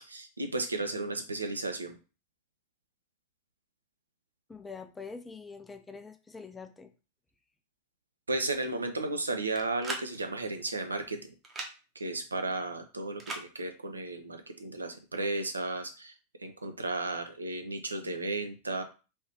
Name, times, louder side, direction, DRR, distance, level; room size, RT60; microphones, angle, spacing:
voice 1, 0.1-2.0 8.3-11.3 12.0-16.1 16.4-18.8, right 2 dB, 80° right, 6 dB, 0.5 m, -34 dB
voice 2, 4.5-6.9, left 4 dB, 15° left, 7 dB, 0.4 m, -45 dB
sound 1, 9.5-10.1 11.4-11.7 13.2-13.5, right 2 dB, 20° right, 0.7 m, -37 dB
3.2 x 2.8 x 2.8 m, 0.32 s
figure-of-eight pair, 90°, 0 cm